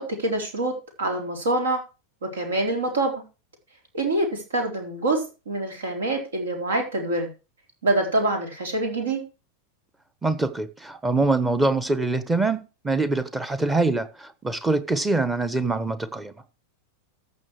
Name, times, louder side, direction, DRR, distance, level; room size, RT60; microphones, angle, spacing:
voice 1, 0.0-1.8 2.2-3.2 3.9-7.3 7.8-9.2, right 2 dB, 65° right, 4.0 m, -25 dB
voice 2, 10.2-16.3, right 3 dB, 10° right, 1.1 m, -24 dB
14.0 x 6.3 x 4.7 m
figure-of-eight pair, 90°, 0 cm